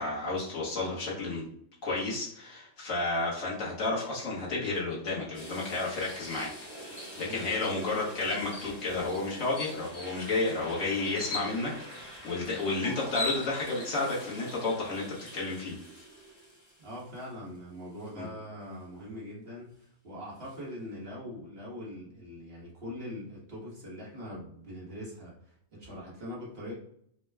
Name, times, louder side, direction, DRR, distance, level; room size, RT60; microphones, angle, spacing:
voice 1, 0.0-1.4 1.8-6.5 6.8-15.1 15.3-15.7 18.1-18.3, left 3 dB, 80° left, -5 dB, 1.6 m, -32 dB
sound 1, 5.3-17.6 18.0-18.1 20.4-20.6, equal, 25° left, 0.9 m, -45 dB
voice 2, 7.1-7.5 16.8-26.7, left 1 dB, 50° right, -5 dB, 1.5 m, -42 dB
sound 2, 8.5-8.7 9.1-9.2 9.6-10.2 11.2-11.5 12.6-12.7 13.0-13.9, left 2 dB, 50° left, 0.3 m, -36 dB
4.5 x 2.2 x 3.3 m, 0.68 s
omnidirectional pair, 1.3 m